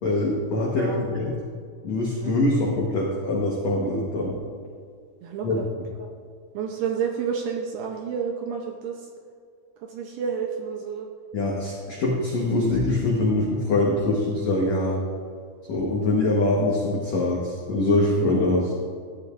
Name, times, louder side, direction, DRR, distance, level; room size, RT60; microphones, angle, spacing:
voice 1, 0.0-1.3 1.8-4.4 5.4-5.6 11.3-15.0 15.7-18.7, left 2 dB, 75° left, -3 dB, 1.6 m, -23 dB
voice 2, 0.7-1.4 2.2-2.4 5.2-5.7 6.0-6.1 6.5-9.1 9.8-11.1, right 6 dB, 75° right, 2 dB, 2.6 m, -30 dB
15.0 x 11.5 x 2.6 m, 2.1 s
omnidirectional pair, 5.2 m